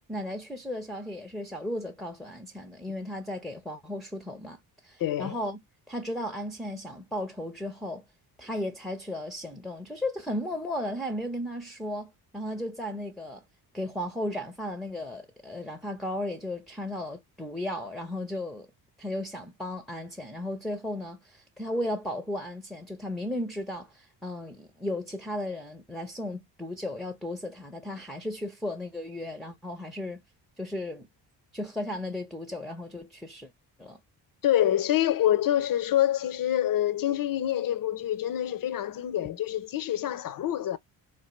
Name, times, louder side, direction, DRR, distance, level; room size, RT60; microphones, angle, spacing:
voice 1, 0.0-5.6 5.9-8.0 8.4-13.4 13.7-18.7 19.0-30.2 30.6-31.1 31.5-33.5 33.8-34.0, left 1 dB, ahead, 0.5 m, -35 dB
voice 2, 5.0-5.4 34.4-40.8, left 12 dB, 45° left, 0.5 m, -26 dB
3.3 x 2.2 x 2.9 m
supercardioid pair, 60°, 48 cm